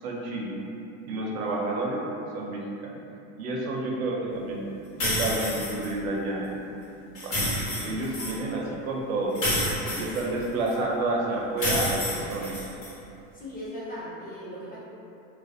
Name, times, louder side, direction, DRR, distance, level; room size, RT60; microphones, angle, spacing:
voice 1, 0.0-0.6 1.0-2.0 2.3-3.0 3.4-4.6 5.0-6.6 7.2-9.4 10.0-12.6, right 2 dB, 90° right, -2 dB, 0.6 m, -30 dB
sound 1, 5.0-5.9 7.2-8.4 9.4-10.7 11.6-12.9, left 1 dB, 50° left, 1.0 m, -29 dB
voice 2, 9.8-10.2 13.3-14.8, equal, 20° left, -8 dB, 0.6 m, -39 dB
2.4 x 2.0 x 2.5 m, 2.8 s
supercardioid pair, 110°, 40 cm